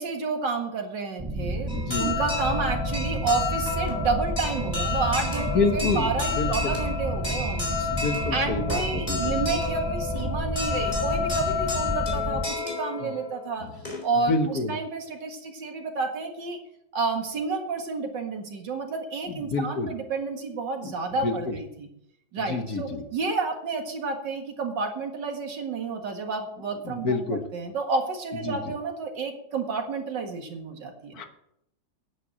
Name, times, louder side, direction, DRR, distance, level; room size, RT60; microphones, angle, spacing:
voice 1, 0.0-7.9 8.3-13.7 14.0-16.6 16.9-21.9 22.3-27.2 27.5-31.2, right 4 dB, 75° right, 3 dB, 2.4 m, -30 dB
sound 1, 1.2-12.4, right 1 dB, 25° right, 0.4 m, -31 dB
voice 2, 1.7-2.1 5.5-6.7 7.9-9.2 13.0-13.1 13.6-13.7 14.3-14.7 19.3-19.9 20.8-20.9 21.2-21.6 22.5-23.0 26.8-27.4 28.4-28.6 31.1-31.2, left 3 dB, 55° left, 6 dB, 1.6 m, -28 dB
sound 2, 1.7-14.3, left 4 dB, 20° left, 3.1 m, -31 dB
9.8 x 9.2 x 6.2 m, 0.76 s
omnidirectional pair, 2.0 m